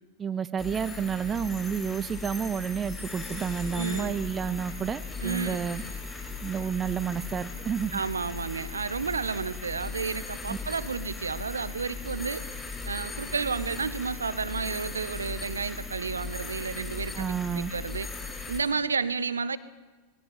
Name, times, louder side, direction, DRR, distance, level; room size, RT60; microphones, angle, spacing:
voice 1, 0.2-5.8 6.4-8.0 10.5-10.6 17.2-17.7, right 7 dB, 20° right, 15 dB, 0.6 m, -30 dB
sound 1, 0.6-18.6, left 4 dB, 10° left, 7.1 m, -38 dB
voice 2, 3.7-4.2 5.2-5.6 7.9-12.4 12.8-18.1 18.5-19.6, right 5 dB, 75° right, 16 dB, 0.9 m, -31 dB
20.0 x 17.5 x 9.3 m, 1.3 s
figure-of-eight pair, 90°, 0 cm